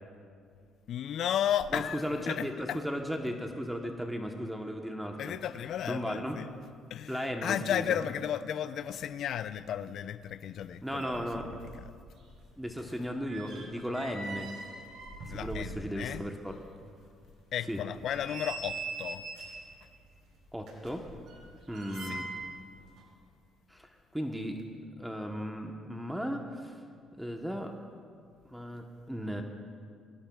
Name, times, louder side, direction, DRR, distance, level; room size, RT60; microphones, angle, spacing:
voice 1, 0.9-2.8 5.2-6.5 6.9-11.5 15.3-16.2 17.5-19.2 22.1-22.2, left 10 dB, 65° left, 0.4 m, -34 dB
voice 2, 1.7-5.4 5.9-6.4 7.1-8.0 10.8-11.5 12.6-14.5 15.3-16.5 17.7-17.8 20.5-21.1 21.7-22.3 23.7-24.7 25.0-26.8 27.2-27.7 28.5-29.4, equal, 5° right, 1.0 m, -36 dB
sound 1, 10.6-10.7 10.9-11.9 12.2-16.1 16.5-16.6 17.1-17.2 17.8-19.7 20.6-22.6 22.9-23.0, right 3 dB, 70° right, 3.9 m, -42 dB
22.5 x 17.0 x 2.4 m
cardioid pair, 95°, 0 cm